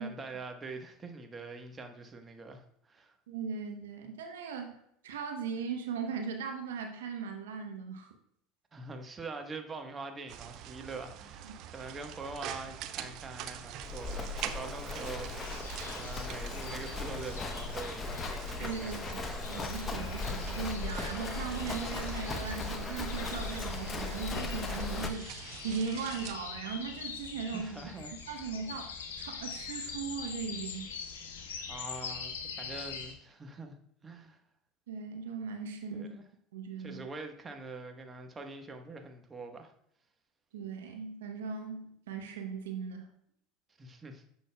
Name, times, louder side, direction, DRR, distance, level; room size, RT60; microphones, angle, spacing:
voice 1, 0.0-3.1 8.7-19.6 27.5-28.1 31.3-33.8 34.0-34.4 35.9-36.2 36.8-39.7 43.8-44.2, right 3 dB, 25° right, 5 dB, 1.2 m, -44 dB
voice 2, 3.3-8.1 11.4-11.6 18.6-27.7 28.3-30.9 34.9-36.1 36.5-37.0 40.5-43.1, right 5 dB, 80° right, 4 dB, 0.9 m, -38 dB
sound 1, 10.3-26.4, right 10 dB, 55° right, 0.6 m, -46 dB
Livestock farm animals working animals, 13.8-25.1, left 3 dB, 25° left, 0.9 m, -38 dB
sound 2, 15.4-33.1, left 6 dB, 80° left, 1.1 m, -44 dB
9.5 x 6.3 x 2.3 m, 0.69 s
hypercardioid pair, 80°, 0 cm